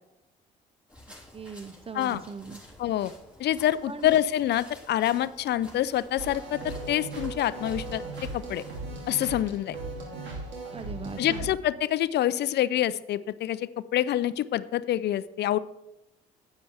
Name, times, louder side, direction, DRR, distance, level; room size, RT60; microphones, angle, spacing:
sound 1, 0.9-8.8, left 1 dB, 5° right, 3.7 m, -51 dB
voice 1, 1.3-2.6 3.9-4.2 10.7-11.5, right 5 dB, 30° right, 15 dB, 0.7 m, -39 dB
voice 2, 2.8-3.1 3.4-8.0 8.3-8.6 9.1-9.8 11.2-15.6, left 12 dB, 55° left, 17 dB, 0.4 m, -26 dB
sound 2, 6.2-11.5, right 2 dB, 65° right, 2.7 m, -37 dB
10.0 x 9.1 x 3.4 m, 0.89 s
hypercardioid pair, 60°, 20 cm